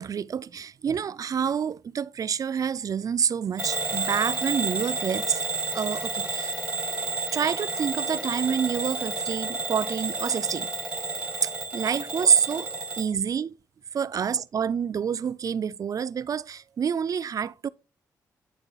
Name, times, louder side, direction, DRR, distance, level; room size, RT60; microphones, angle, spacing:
voice 1, 0.0-5.4 5.7-6.5 7.3-10.7 11.4-12.7 13.0-13.6 13.9-17.7, right 7 dB, 50° right, 0.3 m, -27 dB
Bell / Alarm, 3.6-13.1, right 3 dB, 15° right, 1.7 m, -31 dB
7.4 x 6.6 x 2.3 m
cardioid pair, 60°, 8 cm